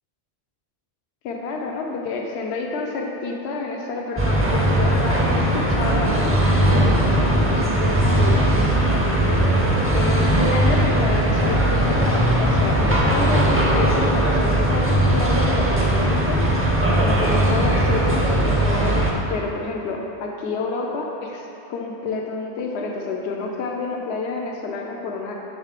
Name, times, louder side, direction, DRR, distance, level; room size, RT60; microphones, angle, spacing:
voice 1, 1.2-9.4 9.9-16.4 17.0-25.3, left 3 dB, 80° left, 0 dB, 0.9 m, -28 dB
sound 1, 4.2-19.1, right 1 dB, 20° right, 0.4 m, -19 dB
6.6 x 3.2 x 4.9 m, 2.8 s
omnidirectional pair, 1.1 m